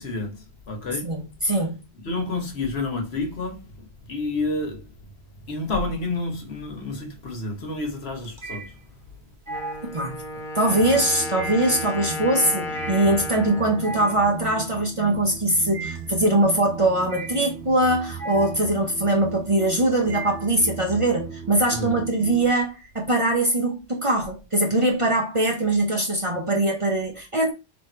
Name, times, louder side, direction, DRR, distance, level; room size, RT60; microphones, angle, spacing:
voice 1, 0.0-1.1 2.0-3.7 4.0-4.9 5.5-8.8 21.7-22.0, left 2 dB, 70° left, 1.3 m, -29 dB
voice 2, 1.0-1.8 9.8-10.2 10.5-27.5, right 1 dB, 35° right, 0.6 m, -22 dB
sound 1, 5.4-6.1 6.4-20.9, right 3 dB, 50° right, 1.0 m, -38 dB
Wind instrument woodwind instrument, 9.5-15.2, left 2 dB, 55° left, 0.8 m, -34 dB
sound 2, 10.7-22.5, right 6 dB, 85° right, 0.8 m, -38 dB
3.5 x 2.5 x 4.2 m
omnidirectional pair, 1.1 m